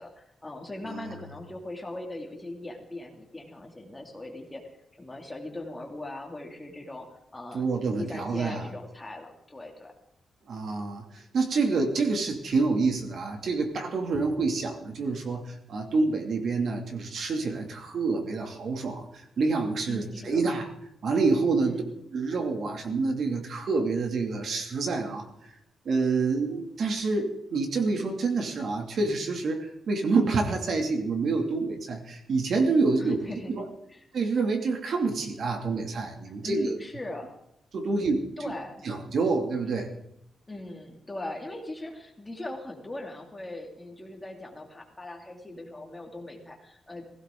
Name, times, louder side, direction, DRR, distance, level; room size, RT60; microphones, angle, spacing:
voice 1, 0.0-4.6 5.0-9.9 19.9-20.4 21.6-21.9 33.0-33.5 33.9-34.1 36.4-37.3 37.8-38.7 40.5-47.0, left 2 dB, 15° left, 1 dB, 2.8 m, -40 dB
voice 2, 7.5-8.7 10.5-20.7 21.0-21.8 22.1-25.3 25.8-33.2 33.5-33.6 34.1-36.8 37.7-38.2 38.8-39.9, right 3 dB, 60° right, 3 dB, 2.7 m, -27 dB
20.0 x 16.5 x 3.9 m, 0.79 s
wide cardioid pair, 140°, 0 cm